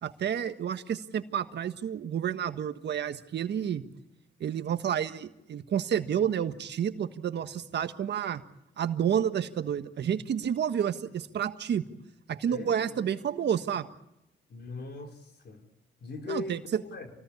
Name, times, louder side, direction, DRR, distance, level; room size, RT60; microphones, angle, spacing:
voice 1, 0.0-3.8 4.4-8.4 8.8-11.9 12.3-13.9 16.3-16.6, right 9 dB, 60° right, 9 dB, 1.5 m, -30 dB
voice 2, 12.5-13.1 14.5-15.6 16.0-17.1, left 3 dB, 55° left, 3 dB, 4.1 m, -40 dB
27.5 x 19.0 x 8.5 m, 0.86 s
cardioid pair, 90°, 20 cm